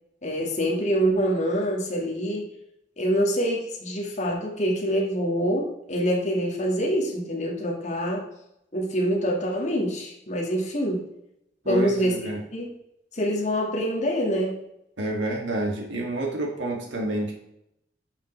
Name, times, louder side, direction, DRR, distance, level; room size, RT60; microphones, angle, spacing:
voice 1, 0.2-2.5 3.0-8.2 8.7-11.1 11.7-12.1 12.5-12.7 13.1-14.6, equal, 40° left, -2 dB, 2.1 m, -25 dB
voice 2, 11.6-12.4 15.0-17.3, right 1 dB, 80° right, -1 dB, 2.7 m, -28 dB
10.5 x 6.0 x 3.4 m, 0.81 s
head